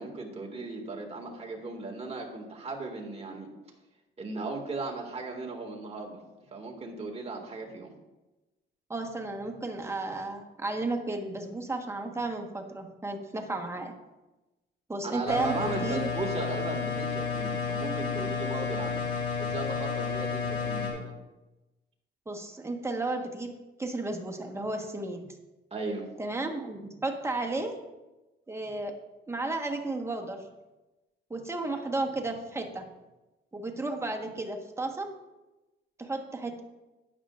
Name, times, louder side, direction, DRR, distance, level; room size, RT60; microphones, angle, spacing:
voice 1, 0.0-3.5 4.2-6.2 6.5-7.9 15.0-19.0 19.4-21.1 25.7-26.1, right 3 dB, 30° right, 1 dB, 2.0 m, -36 dB
voice 2, 8.9-13.9 14.9-16.1 22.3-23.5 23.8-25.3 26.2-27.8 28.5-28.9 29.3-30.4 31.3-32.9 33.5-35.1 36.0-36.6, right 2 dB, 15° right, 3 dB, 1.2 m, -33 dB
sound 1, 15.3-20.9, left 5 dB, 75° left, 2.7 m, -31 dB
12.0 x 8.9 x 2.5 m, 1.1 s
cardioid pair, 90°, 20 cm